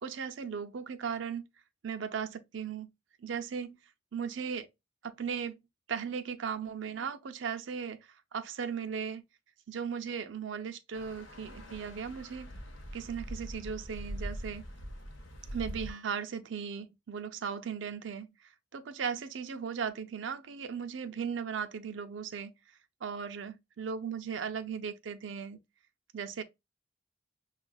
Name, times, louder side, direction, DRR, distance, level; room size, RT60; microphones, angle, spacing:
voice 1, 0.0-1.5 1.8-2.9 3.2-3.8 4.1-4.7 5.0-5.6 5.9-9.2 9.7-12.5 12.9-14.6 15.5-22.5 23.0-25.6 26.1-26.4, right 6 dB, 75° right, 0.5 m, -37 dB
sound 1, 10.9-15.9, equal, 80° left, 0.8 m, -43 dB
6.1 x 2.4 x 2.3 m
head